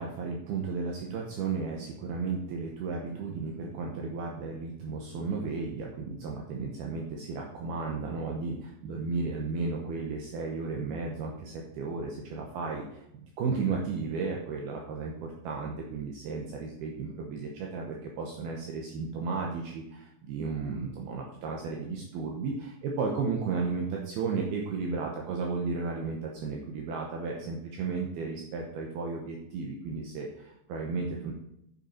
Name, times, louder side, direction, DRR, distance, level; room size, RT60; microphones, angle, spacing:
voice 1, 0.0-31.3, right 4 dB, 75° right, 0 dB, 2.5 m, -34 dB
8.2 x 7.4 x 4.4 m, 0.78 s
omnidirectional pair, 5.3 m